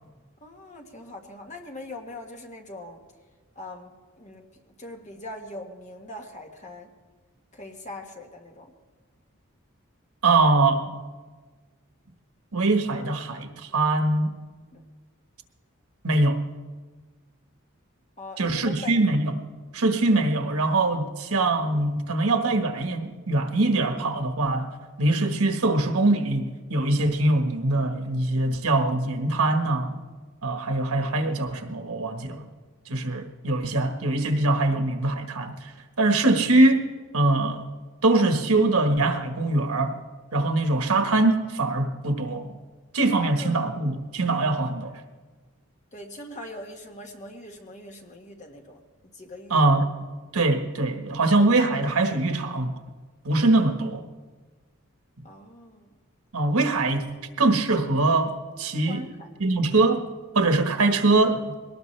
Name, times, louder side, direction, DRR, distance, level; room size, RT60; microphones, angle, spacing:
voice 1, 0.4-3.0 3.5-6.9 7.5-8.7 14.7-14.8 18.2-18.9 43.1-43.6 45.9-48.8 49.1-49.6 55.2-55.9 58.9-59.3, left 2 dB, 35° left, 2 dB, 1.6 m, -41 dB
voice 2, 10.2-10.9 12.5-14.3 16.0-16.4 18.4-19.4 19.7-24.7 25.0-30.0 30.4-32.5 32.9-35.7 36.0-36.8 37.1-37.6 38.0-40.0 40.3-42.5 42.9-44.9 49.5-49.9 50.3-52.7 53.2-54.0 56.3-59.0 59.4-60.0 60.3-61.6, right 2 dB, 85° right, 6 dB, 1.4 m, -23 dB
22.0 x 18.5 x 3.3 m, 1.4 s
head